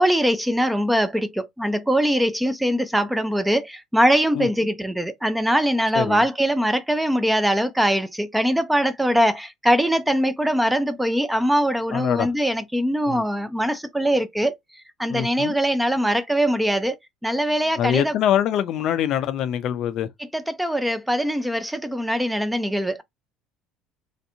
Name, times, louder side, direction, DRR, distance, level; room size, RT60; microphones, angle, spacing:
voice 1, 0.0-14.5 15.0-17.0 17.2-18.1 20.3-23.0, equal, 5° right, 0.5 m, -22 dB
voice 2, 5.9-6.2 11.9-12.3 13.1-13.2 15.1-15.5 17.8-20.1, left 10 dB, 50° left, 0.4 m, -24 dB
3.2 x 2.7 x 2.7 m
cardioid pair, 140°, 0 cm